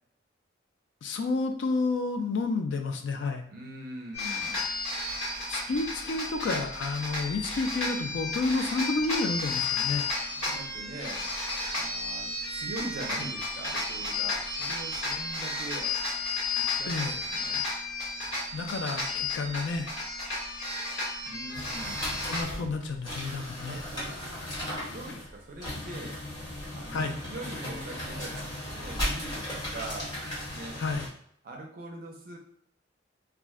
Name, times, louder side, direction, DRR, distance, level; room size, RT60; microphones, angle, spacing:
voice 1, 1.0-3.4 5.5-10.0 16.9-17.2 18.5-19.9 22.3-23.8 24.9-25.0 26.9-27.2 30.8-31.1, left 3 dB, 65° left, 5 dB, 0.4 m, -30 dB
voice 2, 3.5-4.7 10.1-11.3 11.7-15.9 16.6-17.6 21.3-22.1 23.2-24.5 24.9-30.2 30.5-30.8 31.4-32.4, right 1 dB, 45° right, 1 dB, 0.4 m, -42 dB
sound 1, 4.1-22.4, left 3 dB, 80° left, 1.4 m, -33 dB
sound 2, 21.5-31.1, left 1 dB, 20° left, 1.1 m, -36 dB
2.4 x 2.1 x 3.5 m, 0.65 s
head